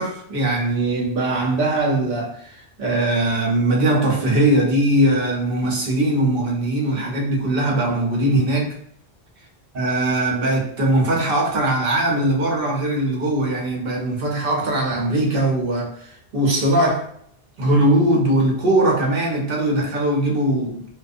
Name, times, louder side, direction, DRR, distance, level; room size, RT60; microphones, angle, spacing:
voice 1, 0.0-8.7 9.7-17.1 17.6-20.9, right 1 dB, 65° right, 0.9 m, -20 dB
2.5 x 2.3 x 2.4 m
omnidirectional pair, 1.0 m